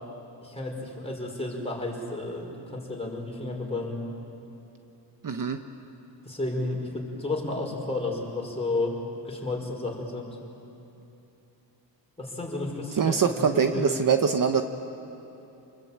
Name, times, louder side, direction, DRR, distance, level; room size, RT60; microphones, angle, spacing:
voice 1, 0.4-4.0 6.2-9.0 9.2-10.4 12.2-14.1, left 2 dB, 15° left, -1 dB, 5.4 m, -32 dB
voice 2, 5.2-5.6 13.0-14.6, right 6 dB, 45° right, 7 dB, 1.1 m, -23 dB
28.5 x 21.5 x 8.9 m, 2.9 s
cardioid pair, 110°, 44 cm